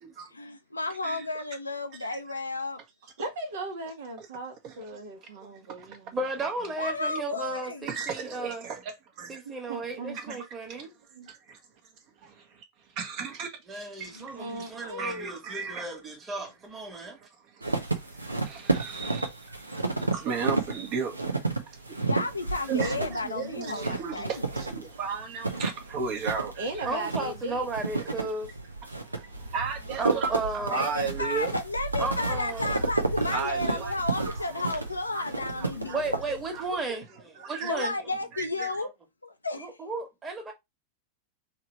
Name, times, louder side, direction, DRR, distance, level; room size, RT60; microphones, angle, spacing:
voice 1, 0.3-2.8 6.8-7.9 14.1-14.2 22.0-24.4 30.7-36.0 37.6-38.9 39.2-39.7, left 2 dB, 80° left, 0.6 m, -32 dB
voice 2, 3.2-6.2 7.3-7.4 9.4-10.4 10.7-10.8 11.1-11.3 14.3-15.4 26.6-27.7, right 2 dB, 60° right, 1.3 m, -38 dB
voice 3, 6.1-8.6 9.3-10.9 13.7-17.2 26.8-28.5 29.1-29.2 30.0-30.8 32.0-32.8 35.8-37.9 38.8-38.9 39.6-40.5, right 3 dB, 20° right, 1.6 m, -34 dB
voice 4, 7.9-9.4 10.1-10.4 10.8-10.9 11.3-11.4 12.4-12.6 12.9-13.6 14.0-15.9 17.0-22.1 22.7-26.9 29.0-31.5 32.7-32.9 33.3-34.6 35.1-36.0 36.3-37.0 37.4-37.9 38.3-38.7, right 6 dB, 40° right, 1.3 m, -36 dB
sound 1, 17.6-36.8, right 3 dB, 80° right, 0.7 m, -32 dB
3.7 x 3.1 x 4.4 m
figure-of-eight pair, 90°, 0 cm